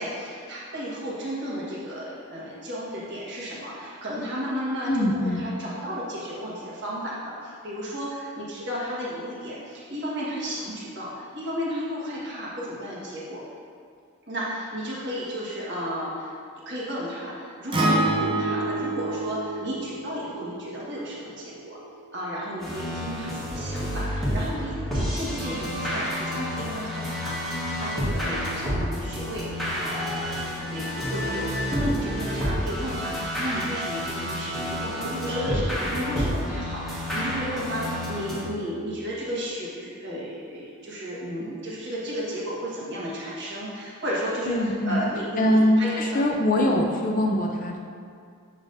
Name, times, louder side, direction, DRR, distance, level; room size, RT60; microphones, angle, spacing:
voice 1, 0.0-13.4 14.3-16.3 16.6-21.8 22.1-29.4 29.8-30.3 30.6-46.2 46.5-46.8, equal, 55° right, -6 dB, 1.5 m, -33 dB
voice 2, 4.8-5.4 44.5-45.0 45.4-47.8, left 1 dB, 40° left, 2 dB, 0.5 m, -23 dB
Acoustic guitar, 17.7-22.0, right 2 dB, 25° right, 0.6 m, -28 dB
sound 1, 22.6-38.4, equal, ahead, 1.4 m, -29 dB
7.2 x 5.6 x 2.6 m, 2.3 s
head